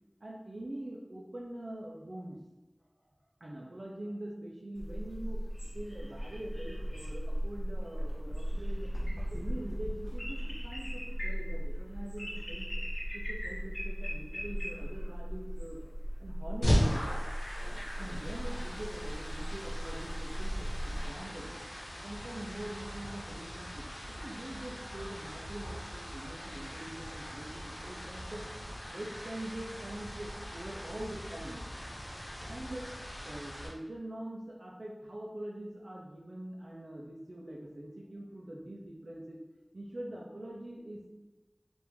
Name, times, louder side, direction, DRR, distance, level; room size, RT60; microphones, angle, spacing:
voice 1, 0.2-2.4 3.4-5.4 5.7-8.9 9.2-12.7 13.1-15.8 16.2-17.0 18.0-21.6 21.9-28.4 28.9-31.6 32.5-32.9 33.2-39.4 39.7-41.1, right 1 dB, 70° right, -4 dB, 0.5 m, -44 dB
sound 1, 4.8-21.1, equal, 60° left, 1.0 m, -37 dB
sound 2, 16.6-33.7, equal, 85° left, 1.0 m, -38 dB
3.2 x 2.5 x 3.3 m, 1.1 s
wide cardioid pair, 50°, 0 cm